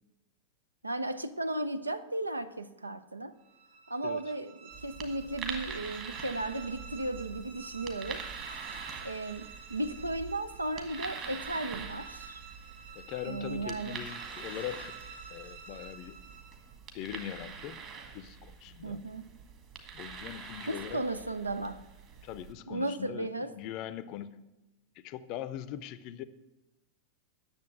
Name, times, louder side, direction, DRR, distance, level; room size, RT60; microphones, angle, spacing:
voice 1, 0.8-3.3 3.9-8.2 9.0-12.4 13.3-14.0 18.8-19.2 20.7-21.8 22.7-23.5, right 2 dB, 80° right, 0.5 m, -35 dB
sound 1, 3.4-16.8, right 5 dB, 65° right, 3.2 m, -49 dB
sound 2, 4.7-22.5, right 6 dB, 35° right, 1.7 m, -45 dB
voice 2, 12.9-14.9 15.3-16.2 16.9-17.8 18.1-19.0 19.9-21.0 22.2-24.4 25.0-26.2, left 11 dB, 40° left, 0.6 m, -41 dB
9.8 x 7.0 x 7.7 m
figure-of-eight pair, 90°, 0 cm